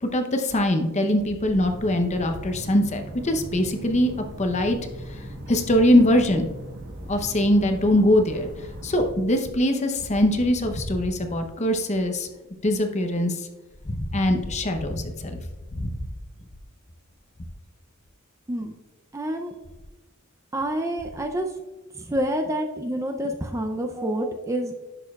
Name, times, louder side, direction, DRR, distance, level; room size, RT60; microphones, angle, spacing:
voice 1, 0.0-4.1 4.4-4.8 5.5-6.5 7.1-8.5 8.8-12.3 12.6-13.4 13.8-15.4 15.7-15.9, left 1 dB, 30° left, 5 dB, 0.7 m, -22 dB
sound 1, 1.6-9.1, equal, 50° right, 1.1 m, -39 dB
voice 2, 19.1-19.5 20.5-21.5 22.0-24.7, right 1 dB, 15° right, 4 dB, 0.5 m, -28 dB
10.5 x 6.7 x 2.3 m, 1.1 s
head